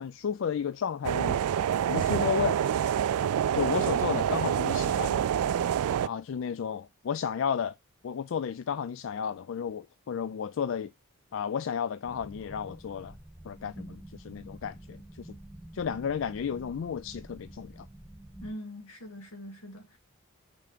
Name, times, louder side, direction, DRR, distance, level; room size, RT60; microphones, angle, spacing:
voice 1, 0.0-1.4 1.9-2.6 3.5-5.3 6.0-7.8 8.0-10.9 11.3-13.2 13.4-15.4 15.7-17.9, left 7 dB, 60° left, 0.3 m, -33 dB
sound 1, 1.0-6.1, right 9 dB, 90° right, 0.3 m, -27 dB
sound 2, 12.0-18.5, right 1 dB, 5° left, 1.6 m, -48 dB
voice 2, 18.4-20.0, equal, 85° left, 2.1 m, -42 dB
5.9 x 4.6 x 5.1 m
head